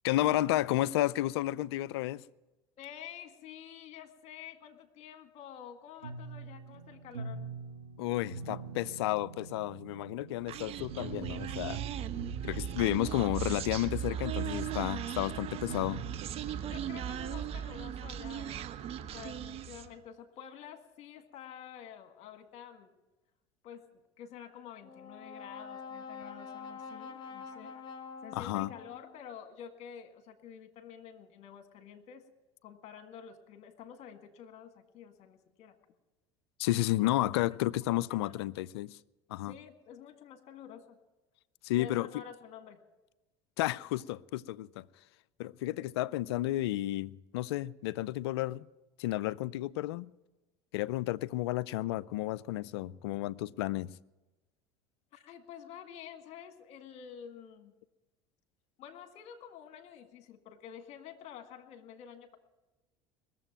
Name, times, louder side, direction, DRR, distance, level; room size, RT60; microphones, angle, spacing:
voice 1, 0.0-2.2 8.0-11.8 12.4-16.1 28.3-28.7 36.6-39.0 39.3-39.5 41.6-42.1 43.6-44.9 45.4-48.7 49.0-50.1 50.7-54.0, left 16 dB, 75° left, 0.4 m, -32 dB
voice 2, 2.8-7.5 16.7-22.9 23.6-27.8 28.2-32.3 32.6-35.8 37.0-37.1 38.2-38.4 39.4-41.0 41.7-42.8 55.1-57.7 58.8-62.4, left 9 dB, 55° left, 1.8 m, -49 dB
sound 1, 6.0-16.2, right 4 dB, 90° right, 1.0 m, -46 dB
Human voice, 10.5-20.0, right 9 dB, 50° right, 1.0 m, -38 dB
Brass instrument, 24.8-29.2, left 5 dB, 35° left, 1.6 m, -46 dB
20.5 x 7.5 x 9.0 m
hypercardioid pair, 75°, 14 cm